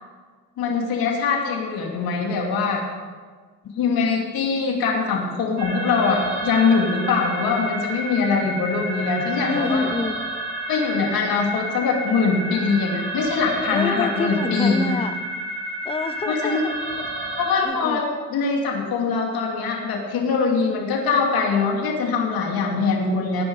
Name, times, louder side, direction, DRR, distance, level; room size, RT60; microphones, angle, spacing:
voice 1, 0.6-2.8 3.7-9.9 10.7-14.9 16.3-16.6 17.4-18.0 18.3-23.4, left 4 dB, 85° left, 0 dB, 2.6 m, -22 dB
sound 1, 5.6-17.6, right 1 dB, 80° right, 3.8 m, -30 dB
voice 2, 9.4-10.2 13.7-15.2 15.8-17.1 17.6-18.0, left 4 dB, 15° left, 10 dB, 0.7 m, -27 dB
17.0 x 10.0 x 4.8 m, 1.5 s
cardioid pair, 130°, 35 cm